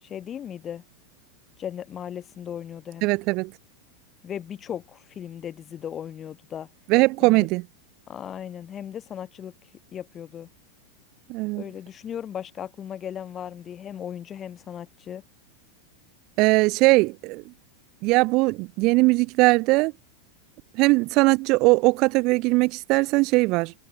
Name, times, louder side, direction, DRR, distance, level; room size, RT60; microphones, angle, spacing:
voice 1, 0.0-0.8 1.6-3.1 4.2-6.7 7.2-7.5 8.1-9.5 9.9-10.5 11.5-15.2, left 9 dB, 25° left, 6.4 m, -37 dB
voice 2, 3.0-3.5 6.9-7.6 11.3-11.6 16.4-17.4 18.0-19.9 20.7-23.7, right 24 dB, 40° right, 1.0 m, -20 dB
figure-of-eight pair, 90°, 0 cm